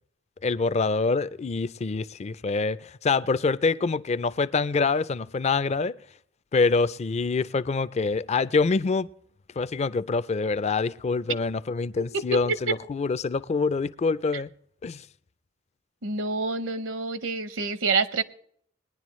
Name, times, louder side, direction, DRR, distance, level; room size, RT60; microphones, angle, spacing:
voice 1, 0.4-6.0 6.5-9.1 9.6-14.5 14.8-15.0, left 4 dB, 35° left, 0.4 m, -25 dB
voice 2, 16.0-18.2, right 3 dB, 80° right, 0.9 m, -27 dB
20.5 x 10.5 x 3.1 m
head